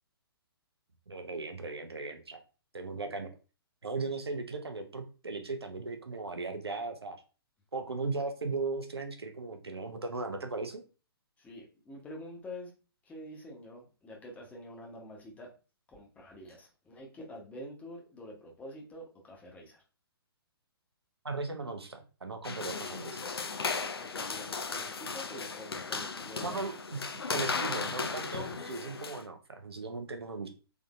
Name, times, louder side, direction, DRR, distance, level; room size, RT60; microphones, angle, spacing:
voice 1, 1.1-2.4 2.7-3.3 3.8-7.2 7.7-10.8 21.2-23.2 26.4-27.0 27.3-30.5, right 3 dB, 80° right, 5 dB, 0.8 m, -37 dB
voice 2, 11.4-12.7 13.0-15.5 15.9-19.8 24.0-26.7, left 1 dB, 10° left, -1 dB, 1.1 m, -47 dB
sound 1, 22.4-29.2, left 4 dB, 70° left, 0.6 m, -36 dB
3.7 x 3.7 x 2.5 m, 0.34 s
figure-of-eight pair, 125°, 13 cm